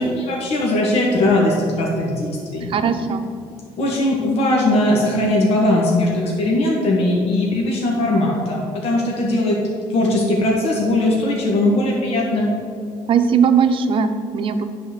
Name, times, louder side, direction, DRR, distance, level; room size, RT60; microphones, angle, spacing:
voice 1, 0.0-2.7 3.8-9.6 9.9-12.5, left 1 dB, 65° left, -3 dB, 1.7 m, -19 dB
voice 2, 2.7-3.2 13.1-14.6, right 6 dB, 50° right, 8 dB, 0.7 m, -18 dB
10.0 x 4.4 x 6.7 m, 2.4 s
cardioid pair, 120°, 11 cm